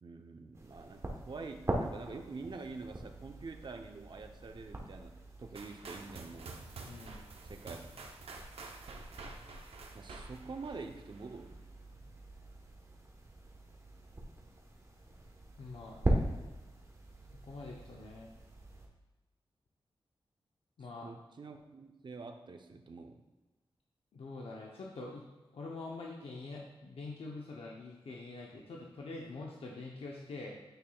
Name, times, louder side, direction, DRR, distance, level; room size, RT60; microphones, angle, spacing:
voice 1, 0.0-5.1 5.4-6.5 7.4-7.8 9.9-11.6 20.8-23.2, right 4 dB, 50° right, 5 dB, 0.7 m, -46 dB
sound 1, 0.5-18.9, right 1 dB, 30° right, 1.1 m, -41 dB
sound 2, 5.5-11.4, right 3 dB, 90° right, 0.7 m, -49 dB
voice 2, 6.9-7.2 15.6-16.4 17.5-18.3 20.8-21.1 24.1-25.2 25.5-30.6, left 3 dB, 75° left, -1 dB, 0.8 m, -45 dB
9.0 x 5.6 x 2.3 m, 1.2 s
wide cardioid pair, 90°, 10 cm